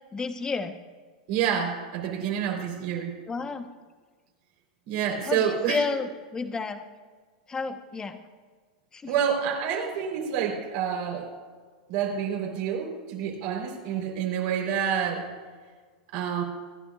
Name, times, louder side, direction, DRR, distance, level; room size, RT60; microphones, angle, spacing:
voice 1, 0.1-0.7 3.3-3.7 5.2-6.8 7.5-8.2 8.9-9.1, left 4 dB, 15° left, 8 dB, 1.0 m, -31 dB
voice 2, 1.3-3.1 4.9-5.8 9.1-11.3 11.9-15.3 16.1-16.4, right 8 dB, 60° right, 1 dB, 3.7 m, -28 dB
26.0 x 11.0 x 2.4 m, 1.5 s
hypercardioid pair, 115°, 4 cm